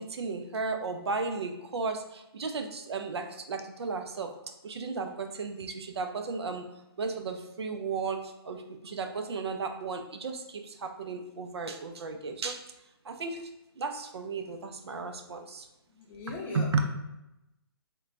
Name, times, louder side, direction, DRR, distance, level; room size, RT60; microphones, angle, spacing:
voice 1, 0.0-4.3 4.6-6.7 7.0-12.6 13.0-13.5 13.8-15.7 16.3-16.9, right 4 dB, 85° right, 6 dB, 0.5 m, -34 dB
voice 2, 15.9-16.9, left 2 dB, 15° left, -4 dB, 0.6 m, -39 dB
4.3 x 2.2 x 2.5 m, 0.91 s
hypercardioid pair, 150°, 13 cm